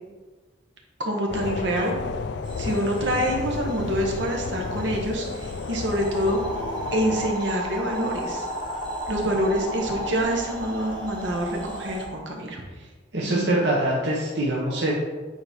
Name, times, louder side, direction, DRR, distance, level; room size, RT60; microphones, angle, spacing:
voice 1, 1.0-2.0 2.6-6.4 6.9-8.4 9.1-12.6 13.2-13.6, equal, 80° right, 0 dB, 1.3 m, -26 dB
Tube-away from brixton, 1.3-7.3, left 4 dB, 65° left, 0.3 m, -32 dB
sound 1, 2.4-12.1, equal, 25° right, 1.1 m, -35 dB
voice 2, 13.1-14.9, right 1 dB, 65° right, -4 dB, 1.0 m, -24 dB
8.7 x 4.3 x 3.6 m, 1.3 s
head